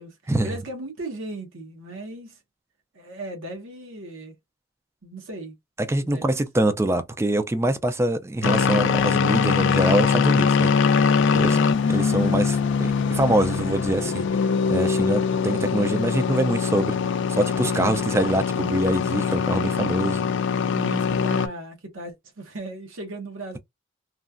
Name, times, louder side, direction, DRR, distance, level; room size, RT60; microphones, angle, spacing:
voice 1, 0.0-2.4 2.9-4.3 5.0-5.6 5.9-6.3 11.3-11.7 20.7-23.6, right 2 dB, 70° right, 1.0 m, -37 dB
voice 2, 5.8-10.7 11.3-11.6 11.9-14.3 14.7-17.0 17.3-20.2, right 1 dB, 15° right, 0.3 m, -24 dB
sound 1, 8.4-21.5, left 6 dB, 60° left, 0.4 m, -22 dB
3.1 x 2.3 x 2.4 m
head